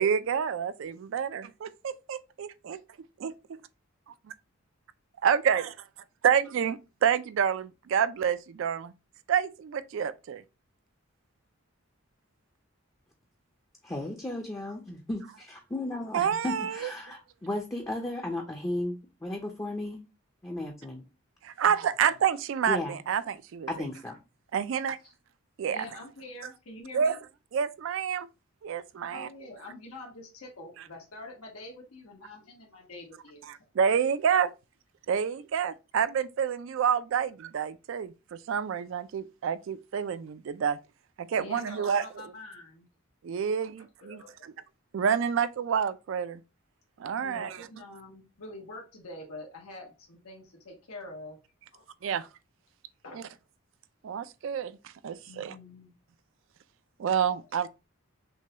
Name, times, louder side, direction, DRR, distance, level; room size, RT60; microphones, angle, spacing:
voice 1, 0.0-2.8 3.2-3.3 5.2-5.7 6.2-8.9 9.3-10.4 16.1-16.9 21.4-23.7 24.5-25.0 25.6-25.8 26.9-27.2 27.5-28.3 28.6-29.3 33.5-34.5 35.1-40.8 41.2-42.1 43.2-44.5 44.9-46.4 47.0-47.7 52.0-52.3 53.1-53.2 54.0-55.6 57.0-57.7, right 7 dB, 60° right, 0.3 m, -28 dB
voice 2, 13.8-20.0 20.4-21.0 22.7-23.0 23.7-24.2, left 1 dB, 15° left, 0.5 m, -35 dB
voice 3, 25.7-27.2 29.1-33.4 41.4-42.9 44.0-44.5 47.2-51.4 51.7-52.2 53.0-53.3 55.3-55.9, left 2 dB, 90° left, 1.2 m, -45 dB
6.0 x 2.2 x 2.8 m
head